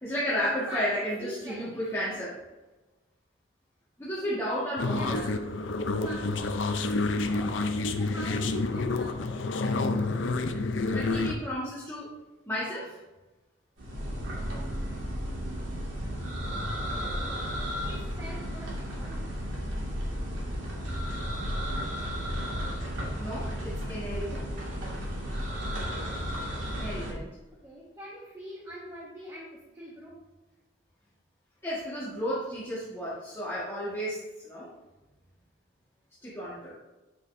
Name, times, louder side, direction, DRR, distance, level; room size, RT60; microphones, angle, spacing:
voice 1, 0.0-2.4 4.0-5.3 10.9-12.1 12.5-13.0 23.2-24.4 26.8-27.3 31.6-34.7 36.2-36.7, equal, 15° left, -10 dB, 1.8 m, -33 dB
voice 2, 0.6-2.1 4.8-6.7 7.3-9.5 17.0-19.3 27.5-30.2, equal, 15° right, -6 dB, 1.6 m, -44 dB
sound 1, 4.8-11.3, left 3 dB, 70° left, 0.6 m, -29 dB
sound 2, 13.8-27.1, equal, 90° right, 2.3 m, -33 dB
9.4 x 6.7 x 2.7 m, 1.1 s
head